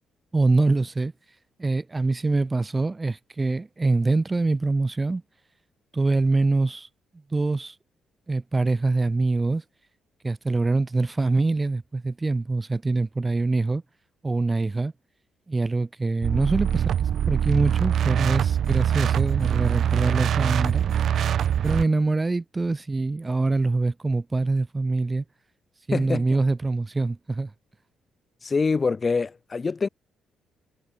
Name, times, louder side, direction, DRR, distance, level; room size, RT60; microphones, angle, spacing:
voice 1, 0.3-1.1 1.6-5.2 5.9-6.9 7.3-7.8 8.3-9.6 10.2-13.8 14.2-14.9 15.5-21.0 21.6-25.2 25.9-27.5, right 3 dB, 20° right, 1.3 m, -24 dB
sound 1, 16.2-21.8, right 9 dB, 65° right, 0.4 m, -23 dB
voice 2, 25.9-26.4 28.4-29.9, left 4 dB, 30° left, 2.5 m, -25 dB
cardioid pair, 90°, 0 cm